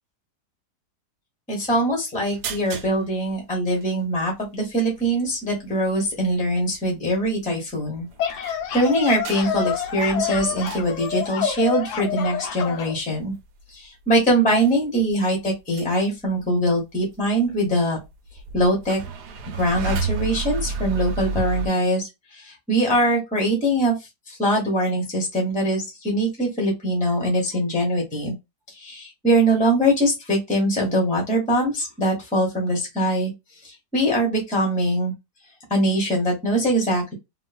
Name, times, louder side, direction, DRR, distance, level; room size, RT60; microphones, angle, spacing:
voice 1, 1.5-8.1 8.7-13.3 13.7-18.0 18.5-19.0 19.5-23.9 24.3-28.3 28.7-33.3 33.6-35.1 35.7-37.1, right 1 dB, 5° left, 0 dB, 0.8 m, -22 dB
sound 1, 2.2-3.0 3.3-3.4 3.7-3.8 5.3-5.4 5.9-6.2 6.8-7.3 7.6-7.7 7.9-11.5 12.0-12.2 13.1-13.2 13.4-13.6 14.2-14.3 14.6-14.8 15.1-16.0 16.2-16.4 17.5-17.6 18.0-21.7, right 3 dB, 80° right, 1.1 m, -31 dB
sound 2, 8.0-13.0, left 8 dB, 75° left, 1.2 m, -28 dB
3.0 x 2.3 x 2.4 m, 0.22 s
omnidirectional pair, 1.8 m